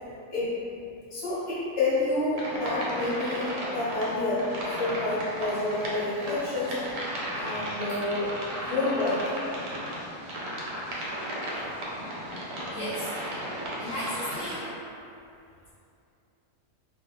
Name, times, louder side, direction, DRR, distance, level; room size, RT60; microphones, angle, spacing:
voice 1, 1.1-6.8 7.3-9.2, left 2 dB, 30° left, -11 dB, 0.7 m, -29 dB
sound 1, 2.3-14.7, right 1 dB, 85° right, 1.1 m, -35 dB
voice 2, 12.7-13.1 13.8-14.7, equal, 65° left, -11 dB, 0.8 m, -34 dB
2.4 x 2.1 x 2.8 m, 2.6 s
omnidirectional pair, 1.6 m